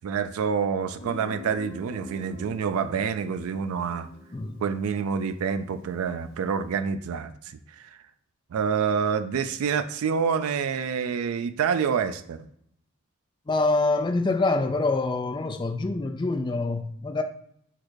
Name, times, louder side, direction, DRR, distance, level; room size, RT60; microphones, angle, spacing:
voice 1, 0.0-4.1 4.6-7.9 8.5-12.4, right 6 dB, 85° right, 0.3 m, -27 dB
Guitar, 1.0-6.6, left 3 dB, 55° left, 1.8 m, -45 dB
voice 2, 13.5-17.2, left 3 dB, 20° left, 0.3 m, -25 dB
4.1 x 2.6 x 4.6 m
head